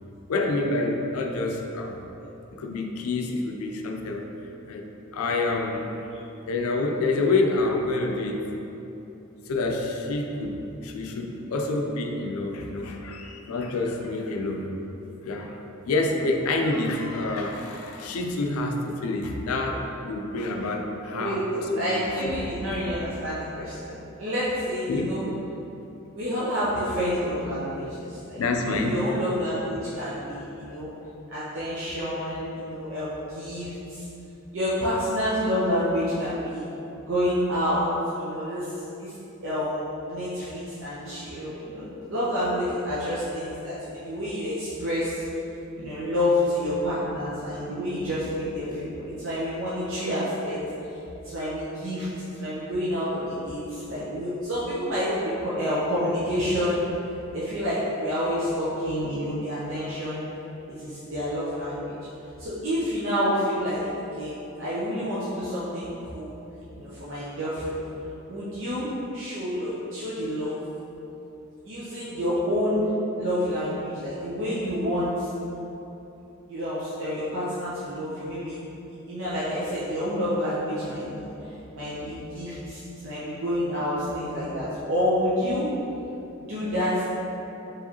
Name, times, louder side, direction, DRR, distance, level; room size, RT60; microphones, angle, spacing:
voice 1, 0.3-2.0 2.5-4.3 4.7-4.9 5.1-6.1 6.4-8.5 9.5-14.7 15.2-15.6 15.9-22.4 24.9-25.1 28.4-29.0, left 2 dB, 85° left, 3 dB, 0.4 m, -27 dB
voice 2, 21.8-23.9 24.2-25.3 26.1-30.9 31.3-34.0 34.5-36.6 37.1-38.7 39.0-39.1 39.4-45.2 45.8-50.6 51.2-52.1 52.4-56.8 57.3-60.2 60.8-61.9 62.4-63.8 64.2-64.3 64.6-66.3 66.7-67.8 68.3-68.9 69.1-70.6 71.6-72.9 73.2-75.3 76.5-78.6 79.1-85.7 86.4-87.1, equal, 60° right, -10 dB, 0.7 m, -28 dB
4.6 x 3.1 x 2.9 m, 3.0 s
head